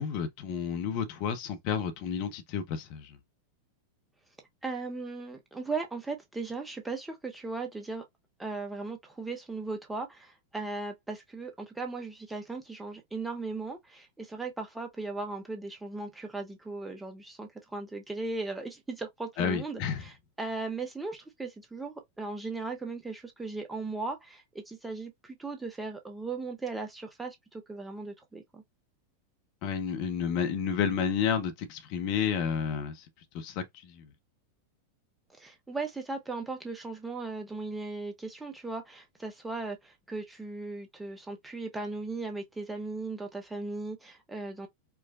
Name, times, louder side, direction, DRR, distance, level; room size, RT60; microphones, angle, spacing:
voice 1, 0.0-3.2 19.4-20.0 29.6-33.1 33.3-34.0, left 7 dB, 45° left, 0.7 m, -31 dB
voice 2, 4.6-8.0 8.4-28.6 35.4-44.7, right 3 dB, 10° right, 0.8 m, -37 dB
4.7 x 2.1 x 2.4 m
figure-of-eight pair, 90°, 0 cm